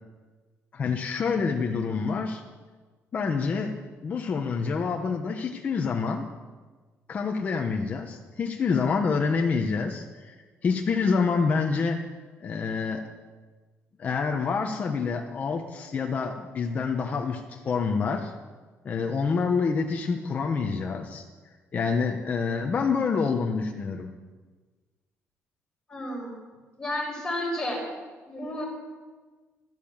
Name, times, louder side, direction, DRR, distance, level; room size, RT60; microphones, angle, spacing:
voice 1, 0.7-2.4 3.1-3.7 4.0-6.2 7.1-10.3 10.6-12.0 12.4-13.0 14.0-18.3 18.8-21.3 21.7-24.1, left 5 dB, 30° left, 2 dB, 1.1 m, -27 dB
voice 2, 25.9-26.3 26.8-27.8 28.3-28.6, left 1 dB, 10° left, -1 dB, 5.1 m, -31 dB
15.5 x 12.5 x 7.3 m, 1.4 s
cardioid pair, 175°, 5 cm